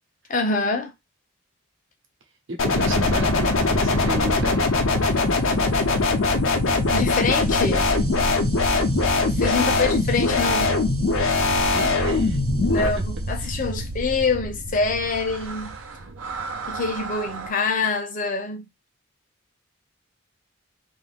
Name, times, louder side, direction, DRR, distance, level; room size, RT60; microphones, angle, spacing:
voice 1, 0.3-0.9 2.7-2.8 6.9-7.9 9.3-10.7 12.7-15.8 16.7-18.6, left 4 dB, 40° left, 0.6 m, -25 dB
voice 2, 2.5-4.7 9.5-9.8 11.7-12.4 13.4-13.6, right 2 dB, 65° right, 1.0 m, -34 dB
sound 1, 2.6-12.9, left 3 dB, 75° left, 0.7 m, -22 dB
sound 2, 2.7-17.5, right 1 dB, 85° right, 0.7 m, -30 dB
2.6 x 2.5 x 3.5 m
head